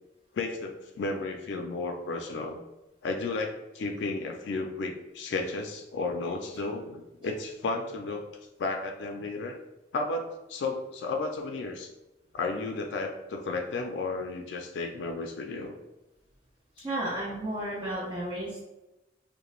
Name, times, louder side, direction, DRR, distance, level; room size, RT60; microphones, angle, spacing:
voice 1, 0.3-2.6 3.0-8.3 8.6-9.6 9.9-11.9 12.3-15.7 16.8-16.9, left 3 dB, 90° left, 3 dB, 0.3 m, -33 dB
voice 2, 16.8-18.6, right 1 dB, 25° right, -7 dB, 0.4 m, -33 dB
3.0 x 2.1 x 2.3 m, 0.98 s
head